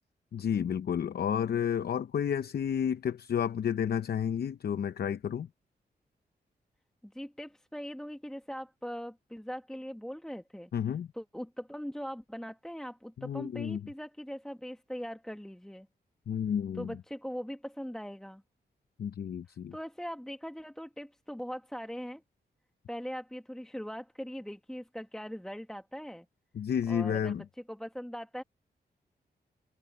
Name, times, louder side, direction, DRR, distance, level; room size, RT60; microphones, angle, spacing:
voice 1, 0.3-5.5 10.7-11.1 13.2-13.8 16.3-16.9 19.0-19.7 26.5-27.4, left 8 dB, 70° left, 0.7 m, -31 dB
voice 2, 7.0-10.7 11.1-15.9 16.7-18.4 19.5-22.2 22.9-26.3 26.9-28.4, equal, 5° left, 1.2 m, -41 dB
cardioid pair, 90°, 17 cm